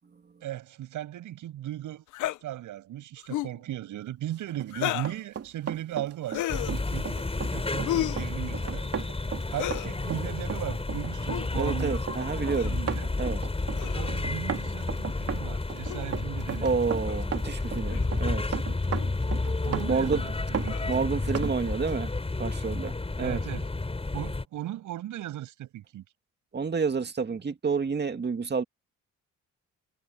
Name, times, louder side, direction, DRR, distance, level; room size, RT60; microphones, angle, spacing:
voice 1, 0.4-2.0 2.4-7.1 7.5-8.9 9.5-13.1 13.9-16.7 19.6-20.9 23.2-23.7 24.1-26.0, right 13 dB, 80° right, 7.9 m, -37 dB
sound 1, 2.1-2.4 3.2-3.6 4.7-5.2 6.3-6.8 7.8-8.3 9.5-9.9 11.2-11.5 12.6-12.8 13.7-14.2 15.9-16.0 17.1-17.2 17.9-18.1 18.9-19.1 20.6-21.0, left 14 dB, 85° left, 0.8 m, -32 dB
Run, 4.5-21.5 21.9-22.0, right 8 dB, 50° right, 2.8 m, -36 dB
sound 2, 6.5-24.4, left 3 dB, 20° left, 6.0 m, -31 dB
voice 2, 11.6-12.8 13.2-13.4 16.6-18.6 19.9-20.2 20.9-22.1 22.4-23.4 26.5-28.6, right 5 dB, 35° right, 2.2 m, -29 dB
cardioid pair, 90°, 30 cm